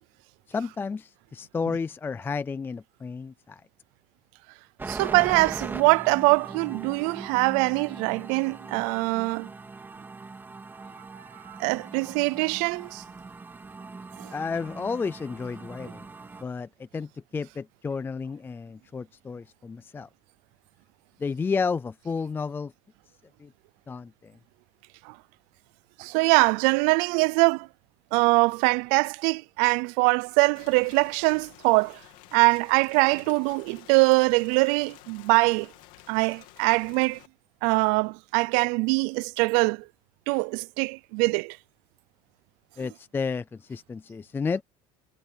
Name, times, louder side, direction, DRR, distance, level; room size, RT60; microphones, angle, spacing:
voice 1, 0.5-3.6 14.3-16.0 16.4-20.1 21.2-22.7 23.4-23.5 23.9-24.3 42.8-44.6, left 5 dB, 15° left, 0.4 m, -32 dB
sound 1, 4.8-16.4, right 3 dB, 15° right, 2.9 m, -40 dB
voice 2, 4.9-9.5 11.1-13.0 14.2-14.3 25.0-25.2 26.0-27.7 28.1-32.0 32.3-35.7 36.1-37.2 37.6-39.8 40.3-41.6, right 29 dB, 90° right, 0.4 m, -23 dB
Rain, 30.6-37.3, left 19 dB, 80° left, 2.7 m, -51 dB
cardioid pair, 145°, 14 cm